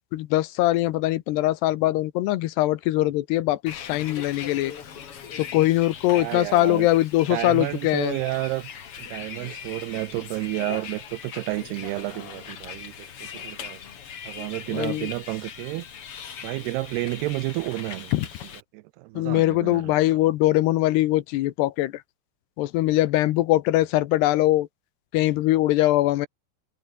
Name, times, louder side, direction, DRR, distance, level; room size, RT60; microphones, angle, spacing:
voice 1, 0.1-4.7 5.4-8.2 14.7-15.1 18.1-18.3 19.2-21.9 22.6-24.7 25.1-26.3, left 16 dB, 80° left, 3.0 m, -22 dB
Bus, 3.7-18.6, left 7 dB, 45° left, 2.2 m, -40 dB
voice 2, 6.1-6.9 7.3-8.7 9.0-13.8 14.2-15.9 16.4-18.1 18.7-20.2, right 20 dB, 80° right, 2.6 m, -31 dB
omnidirectional pair, 4.8 m